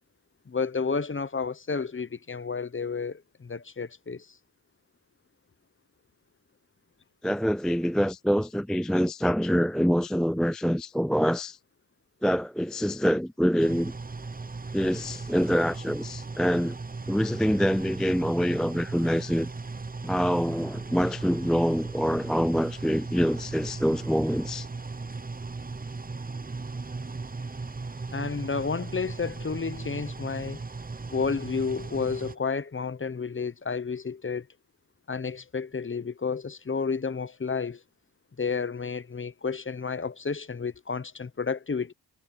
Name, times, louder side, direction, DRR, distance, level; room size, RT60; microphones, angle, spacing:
voice 1, 0.5-4.3 28.1-30.6 31.1-34.5 35.1-37.8 38.4-41.9, left 5 dB, 30° left, 0.8 m, -31 dB
voice 2, 7.2-11.6 12.2-13.9 14.7-16.8 17.1-19.5 20.0-24.7, equal, ahead, 0.3 m, -25 dB
sound 1, 13.6-32.4, right 3 dB, 20° right, 0.7 m, -37 dB
cardioid pair, 65°, 43 cm